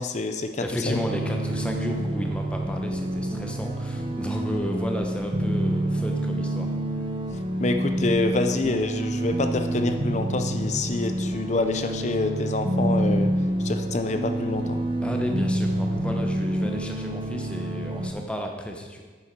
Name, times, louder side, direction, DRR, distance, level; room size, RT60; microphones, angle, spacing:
voice 1, 0.0-1.0 7.6-13.3 13.6-14.8, left 2 dB, 40° left, 7 dB, 0.6 m, -27 dB
voice 2, 0.6-6.7 15.0-19.0, equal, 5° left, 2 dB, 0.9 m, -32 dB
sound 1, 0.8-18.1, right 1 dB, 25° right, 0.7 m, -27 dB
9.3 x 6.9 x 4.7 m, 1.4 s
head